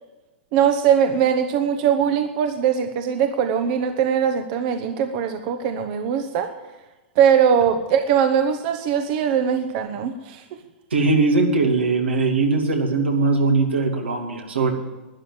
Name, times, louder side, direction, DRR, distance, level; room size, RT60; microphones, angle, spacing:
voice 1, 0.5-6.5 7.2-10.6, right 8 dB, 50° right, 7 dB, 1.1 m, -21 dB
voice 2, 10.9-14.7, right 3 dB, 90° right, 2 dB, 2.6 m, -20 dB
12.5 x 10.0 x 7.4 m, 1.2 s
hypercardioid pair, 115°, 6 cm